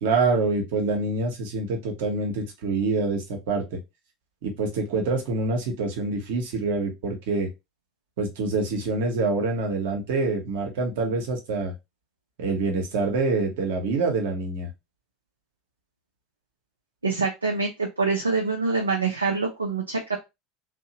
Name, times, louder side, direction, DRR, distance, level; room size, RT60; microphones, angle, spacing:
voice 1, 0.0-3.8 4.4-7.5 8.2-11.7 12.4-14.7, right 3 dB, 60° right, 3 dB, 0.8 m, -26 dB
voice 2, 17.0-20.2, right 4 dB, 85° right, 0 dB, 0.5 m, -25 dB
2.7 x 2.1 x 2.7 m, 0.23 s
figure-of-eight pair, 70°, 0 cm